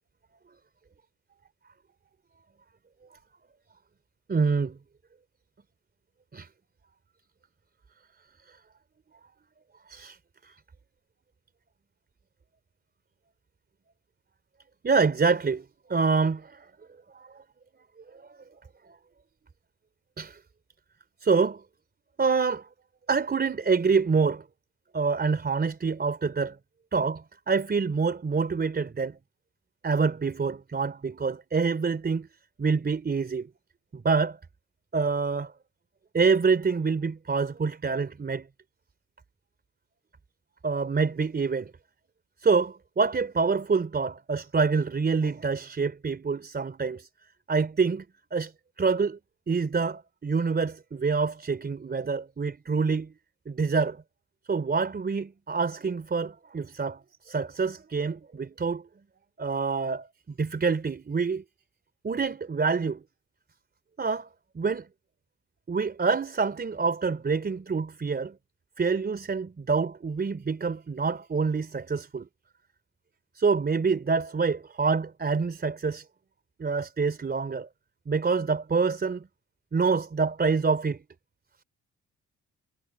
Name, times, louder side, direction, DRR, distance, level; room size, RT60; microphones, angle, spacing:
voice 1, 4.3-4.8 6.3-6.5 9.9-10.2 10.4-10.6 14.8-16.7 17.1-17.3 18.2-18.4 18.9-19.0 20.2-20.4 21.2-21.6 22.2-22.7 23.1-24.4 24.9-26.6 26.9-29.2 29.8-32.3 32.6-33.5 33.9-34.4 34.9-35.5 36.1-38.5 40.6-41.7 42.4-47.1 47.5-48.0 48.3-48.5 48.8-49.2 49.5-53.1 53.5-54.0 54.5-58.8 59.4-60.1 60.4-61.4 62.0-63.0 64.0-64.3 64.5-64.9 65.7-68.4 68.8-72.3 73.4-76.1 76.6-77.7 78.1-79.3 79.7-81.0, right 4 dB, 30° right, 3.7 m, -26 dB
cardioid pair, 90°, 30 cm